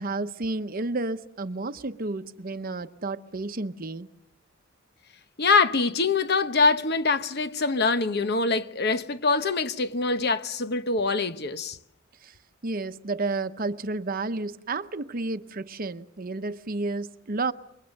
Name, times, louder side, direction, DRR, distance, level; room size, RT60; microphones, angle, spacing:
voice 1, 0.0-4.1 12.2-12.3 12.6-17.5, right 3 dB, 45° right, 0.8 m, -31 dB
voice 2, 5.4-11.8, left 4 dB, 55° left, 1.0 m, -24 dB
27.5 x 23.5 x 6.5 m
head